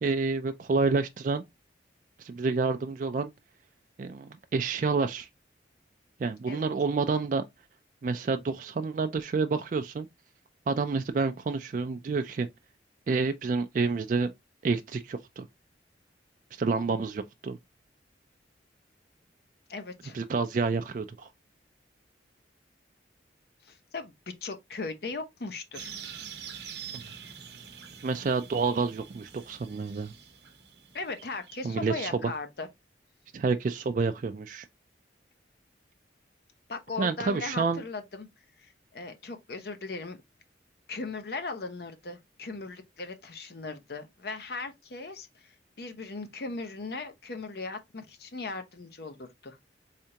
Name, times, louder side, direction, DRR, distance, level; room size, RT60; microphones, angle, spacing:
voice 1, 0.0-1.4 2.2-3.3 4.0-5.3 6.2-7.4 8.0-10.1 10.7-12.5 13.1-14.3 14.6-15.5 16.6-17.6 20.1-21.3 28.0-30.1 31.6-32.1 33.3-34.7 37.0-37.8, right 4 dB, 45° right, 0.3 m, -28 dB
voice 2, 19.7-20.2 23.6-24.1 24.4-25.9 30.9-32.7 36.7-38.3 38.6-40.2 40.9-49.6, left 3 dB, 55° left, 0.7 m, -38 dB
sound 1, 25.7-31.9, right 7 dB, 65° right, 0.8 m, -45 dB
3.7 x 3.3 x 2.8 m
head